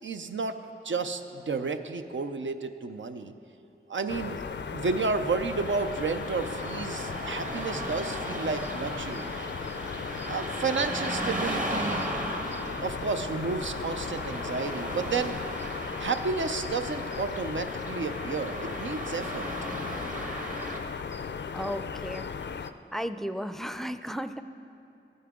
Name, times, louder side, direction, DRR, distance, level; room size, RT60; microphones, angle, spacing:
voice 1, 0.0-3.3 3.9-4.4 4.7-9.4 10.3-12.1 12.8-15.4 16.0-19.5, right 4 dB, 80° right, 8 dB, 0.6 m, -31 dB
sound 1, 4.1-22.7, left 6 dB, 65° left, 0.4 m, -37 dB
Car passing by / Traffic noise roadway noise, 5.5-20.8, right 1 dB, 40° right, 1.3 m, -37 dB
voice 2, 21.5-22.3 22.9-24.4, equal, ahead, 10 dB, 0.4 m, -34 dB
14.5 x 9.5 x 3.6 m, 2.7 s
cardioid pair, 40°, 20 cm